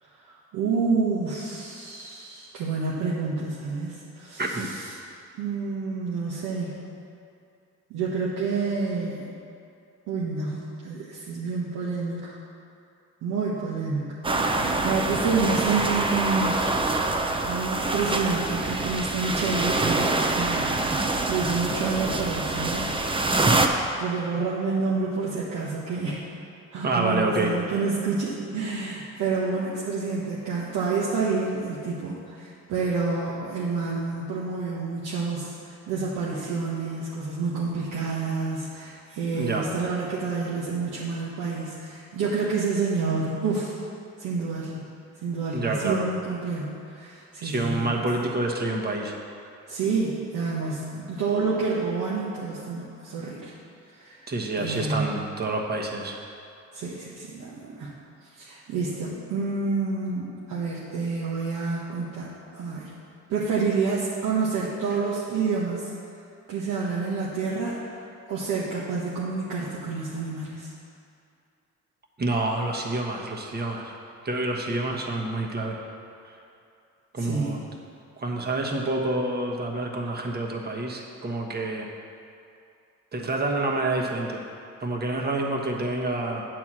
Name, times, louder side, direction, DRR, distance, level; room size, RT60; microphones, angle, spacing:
voice 1, 0.2-4.9 5.4-6.8 7.9-9.3 10.1-12.4 13.2-16.6 17.5-20.8 21.3-22.9 24.0-26.2 26.7-43.8 44.2-44.8 45.2-48.1 49.7-53.5 53.9-54.2 54.6-55.2 56.7-57.9 58.3-63.0 63.3-65.9 66.5-68.0 68.3-70.7 77.2-77.5, right 4 dB, 85° right, -6 dB, 1.2 m, -29 dB
voice 2, 4.4-4.7 26.8-27.5 39.3-39.7 45.5-46.1 47.4-49.1 54.3-56.2 72.2-73.9 74.2-75.8 76.3-76.4 77.1-77.6 78.2-81.9 83.1-84.5 84.8-86.5, right 2 dB, 35° right, 0 dB, 1.3 m, -28 dB
sound 1, 14.2-23.7, right 2 dB, 15° right, 0.6 m, -25 dB
8.4 x 4.7 x 7.4 m, 2.6 s
cardioid pair, 90°, 30 cm